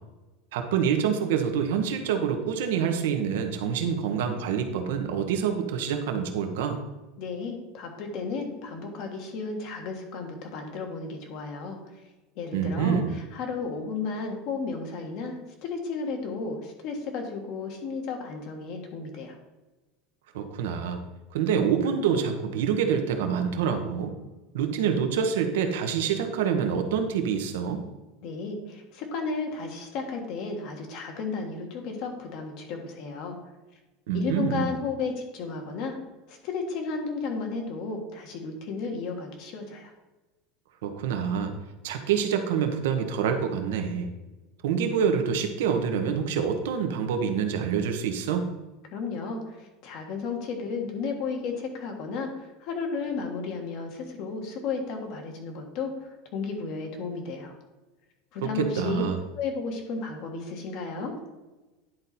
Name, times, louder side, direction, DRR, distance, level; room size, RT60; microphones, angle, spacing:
voice 1, 0.5-6.8 12.5-13.2 20.3-21.0 21.3-24.1 24.5-27.8 34.1-34.7 40.8-41.6 41.8-44.1 44.6-48.5 58.4-59.2, right 7 dB, 85° right, 5 dB, 1.0 m, -26 dB
voice 2, 7.2-11.8 12.3-19.3 28.2-33.4 34.1-36.0 36.3-39.9 48.9-49.4 49.8-55.9 56.3-57.5 58.3-59.0 59.4-61.1, left 4 dB, 55° left, 3 dB, 1.6 m, -33 dB
10.5 x 4.1 x 4.2 m, 1.1 s
supercardioid pair, 135°, 0 cm